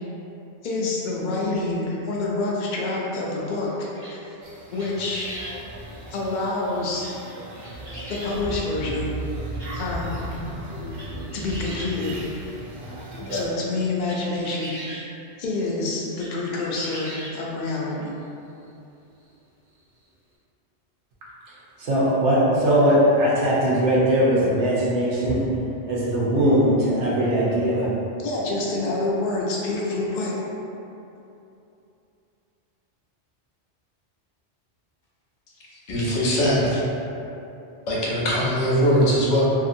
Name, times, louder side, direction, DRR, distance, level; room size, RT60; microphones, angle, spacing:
voice 1, 0.6-4.2 4.7-5.3 6.1-7.1 8.1-9.1 9.7-10.1 11.3-12.2 13.3-15.0 15.4-18.1 28.2-30.3, left 2 dB, 55° left, -4 dB, 0.5 m, -27 dB
sound 1, 4.0-4.4 4.7-5.6 7.0-7.3 7.5-8.4 9.2-9.3 9.5-9.7 10.3-10.4 10.7-12.3 12.7-12.8 13.1-15.0 16.0-16.3 16.6-17.5 18.2-18.3 18.6-18.7 20.0-20.1, right 1 dB, 30° right, 1.0 m, -39 dB
sound 2, 4.4-13.5, right 1 dB, 60° right, 0.6 m, -35 dB
voice 2, 21.8-25.4 25.9-27.9, equal, 85° right, -7 dB, 1.0 m, -20 dB
voice 3, 35.9-36.8 37.9-39.4, equal, 85° left, -6 dB, 1.0 m, -21 dB
2.7 x 2.6 x 2.6 m, 2.8 s
omnidirectional pair, 1.2 m